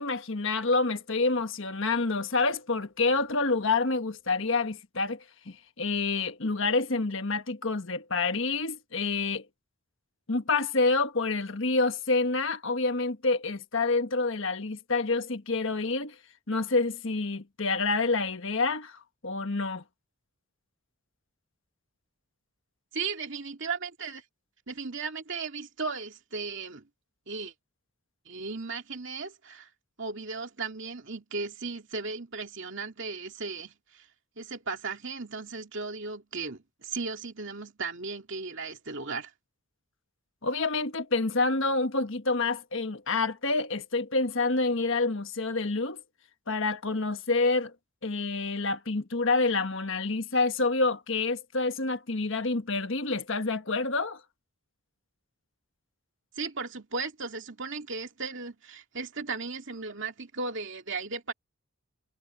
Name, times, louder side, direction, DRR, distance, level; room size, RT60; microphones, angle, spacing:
voice 1, 0.0-9.4 10.3-16.2 16.5-19.8 40.4-46.0 46.5-47.7 48.0-54.2, left 3 dB, 60° left, 1.4 m, -28 dB
voice 2, 22.9-24.2 24.7-26.8 27.3-27.5 28.3-29.7 30.0-34.1 34.4-39.3 56.4-61.3, right 4 dB, 55° right, 2.5 m, -36 dB
head